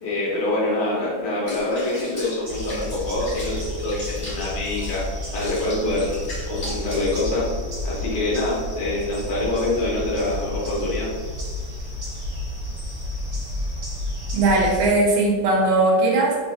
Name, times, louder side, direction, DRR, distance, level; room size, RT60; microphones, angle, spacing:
voice 1, 0.0-5.0 5.3-6.1 6.5-7.5 7.8-11.1, left 2 dB, 65° left, -6 dB, 1.2 m, -25 dB
Water / Bathtub (filling or washing), 1.5-7.3, equal, 45° left, 0.8 m, -38 dB
sound 1, 2.4-14.9, left 1 dB, 55° right, 1.2 m, -31 dB
voice 2, 14.3-16.4, right 2 dB, 85° right, -1 dB, 1.4 m, -19 dB
3.8 x 2.4 x 2.5 m, 1.6 s
omnidirectional pair, 2.2 m